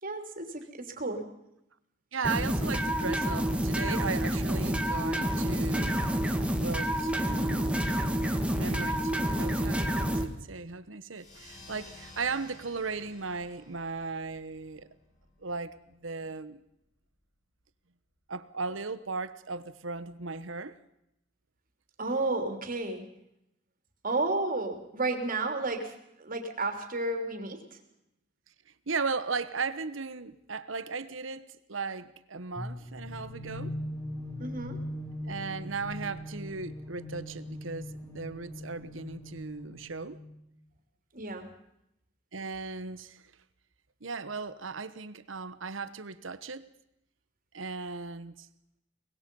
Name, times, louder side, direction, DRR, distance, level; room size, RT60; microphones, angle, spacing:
voice 1, 0.0-1.3 22.0-23.1 24.0-27.8 34.4-34.8 41.1-41.5, right 2 dB, 45° right, 3.3 m, -32 dB
voice 2, 2.1-6.0 6.6-8.1 8.6-14.9 15.4-16.6 18.3-20.8 28.9-33.7 35.3-40.2 42.3-43.2 44.0-46.7 47.5-48.5, right 4 dB, 80° right, 1.2 m, -37 dB
sound 1, 2.2-10.2, equal, 5° right, 2.0 m, -28 dB
sound 2, 11.1-16.2, left 2 dB, 40° left, 7.5 m, -53 dB
sound 3, 32.6-40.3, left 1 dB, 20° left, 6.0 m, -40 dB
24.0 x 20.5 x 5.5 m
head